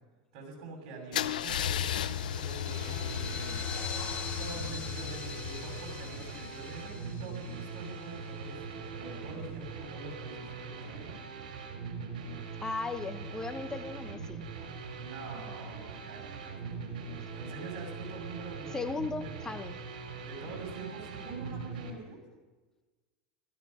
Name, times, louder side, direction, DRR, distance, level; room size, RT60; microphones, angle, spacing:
voice 1, 0.3-3.6 4.4-11.2 15.0-18.8 19.2-19.3 20.2-22.2, right 3 dB, 60° right, 1 dB, 6.5 m, -45 dB
Car / Engine starting / Idling, 1.1-7.0, left 10 dB, 90° left, 0.7 m, -35 dB
sound 1, 1.5-8.4, left 6 dB, 40° left, 4.1 m, -44 dB
sound 2, 2.7-21.9, right 4 dB, 85° right, 3.1 m, -42 dB
voice 2, 12.6-14.4 18.7-19.7, left 3 dB, 15° left, 10 dB, 1.0 m, -36 dB
16.0 x 14.0 x 5.6 m, 1.3 s
hypercardioid pair, 105°, 4 cm